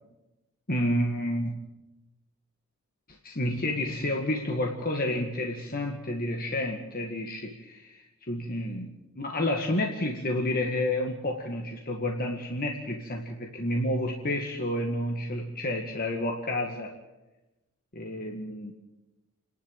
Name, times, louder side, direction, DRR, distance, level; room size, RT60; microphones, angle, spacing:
voice 1, 0.7-1.6 3.1-16.9 17.9-18.7, left 1 dB, 45° left, 1 dB, 2.1 m, -30 dB
29.0 x 11.5 x 9.0 m, 1.0 s
head